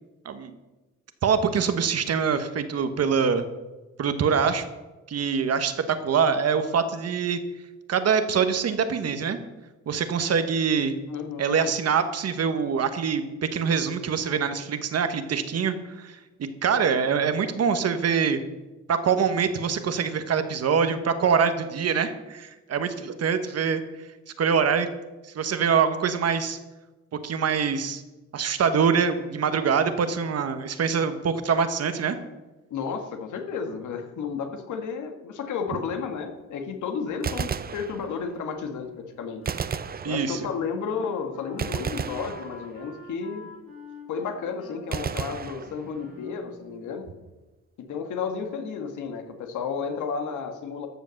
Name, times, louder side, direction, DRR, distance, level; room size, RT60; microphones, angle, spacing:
voice 1, 1.2-3.4 4.0-4.6 5.1-7.4 7.9-9.4 9.9-10.9 11.4-16.2 16.6-18.4 18.9-24.1 24.4-24.9 25.2-26.6 27.2-28.0 28.3-32.2 40.0-40.4, right 6 dB, 55° right, 9 dB, 1.3 m, -24 dB
voice 2, 11.1-11.7 32.7-39.4 40.0-43.5 44.1-47.1 47.9-50.9, left 6 dB, 75° left, 5 dB, 1.7 m, -32 dB
Gunshot gunfire, 37.1-38.5 39.5-40.7 41.6-43.0 44.9-46.3, right 7 dB, 30° right, 0.6 m, -33 dB
Wind instrument woodwind instrument, 39.4-46.8, left 3 dB, 45° left, 3.5 m, -47 dB
13.5 x 7.0 x 6.5 m, 1.1 s
cardioid pair, 90°, 30 cm